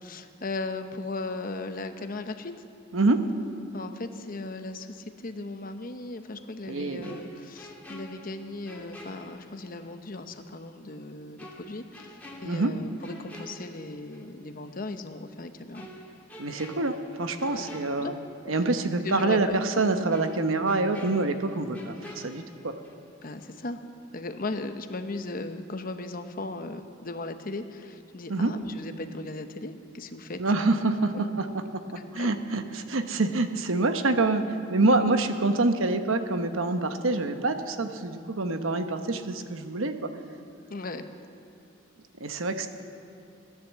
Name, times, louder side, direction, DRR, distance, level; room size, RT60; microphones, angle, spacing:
voice 1, 0.0-2.5 3.7-15.9 17.5-17.6 17.9-18.2 19.0-19.5 23.2-23.8 24.1-30.4 31.1-31.2 32.2-32.3 34.8-35.1 40.7-41.0, left 2 dB, 45° left, 8 dB, 0.9 m, -37 dB
voice 2, 2.9-3.2 6.7-7.2 12.4-12.7 16.4-18.2 18.5-22.8 28.3-28.5 30.4-31.5 31.7-31.8 32.1-34.4 34.7-40.1 42.2-42.7, right 2 dB, 85° right, 8 dB, 1.0 m, -26 dB
sound 1, 7.0-10.0 10.3-10.4 11.4-14.3 14.7-14.9 15.7-18.7 19.0-19.2 20.1-23.1 23.4-23.6, left 1 dB, 10° left, 1.9 m, -47 dB
17.5 x 10.5 x 7.4 m, 2.8 s
head